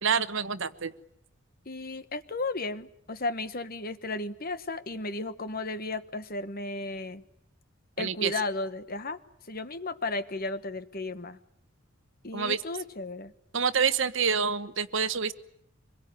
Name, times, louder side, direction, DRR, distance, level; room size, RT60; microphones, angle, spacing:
voice 1, 0.0-0.9 8.0-8.3 12.3-12.6 13.5-15.3, right 6 dB, 60° right, 13 dB, 1.1 m, -27 dB
voice 2, 1.6-7.2 8.0-9.2 9.5-11.4 12.2-13.3, left 2 dB, 40° left, 12 dB, 1.3 m, -34 dB
25.5 x 22.0 x 9.6 m, 0.73 s
head